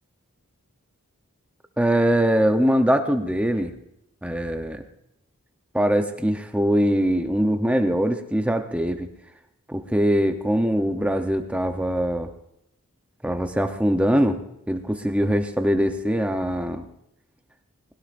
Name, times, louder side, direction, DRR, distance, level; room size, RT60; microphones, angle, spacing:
voice 1, 1.8-3.7 4.2-4.8 5.7-9.1 9.7-12.3 13.2-14.4 14.7-16.8, equal, 5° right, 7 dB, 0.7 m, -22 dB
20.5 x 17.0 x 2.5 m, 0.80 s
head